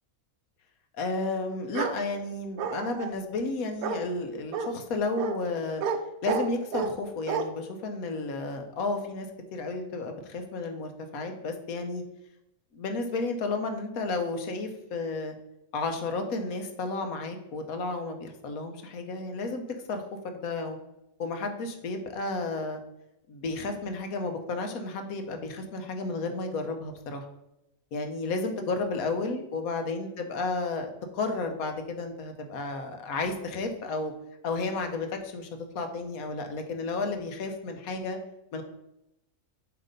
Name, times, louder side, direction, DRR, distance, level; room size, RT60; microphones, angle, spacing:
voice 1, 0.9-5.8 6.2-12.0 12.7-15.4 15.7-19.6 19.9-20.8 21.2-22.8 23.3-27.3 27.9-34.1 34.4-35.5 35.7-38.2 38.5-38.6, left 3 dB, 85° left, 6 dB, 1.3 m, -32 dB
Bark, 1.7-2.0 2.6-3.1 3.8-4.0 4.5-4.7 5.2-5.3 5.8-6.0 6.3-6.9 7.3-7.4, right 6 dB, 85° right, 1.1 m, -30 dB
7.3 x 2.9 x 5.2 m, 0.87 s
omnidirectional pair, 1.4 m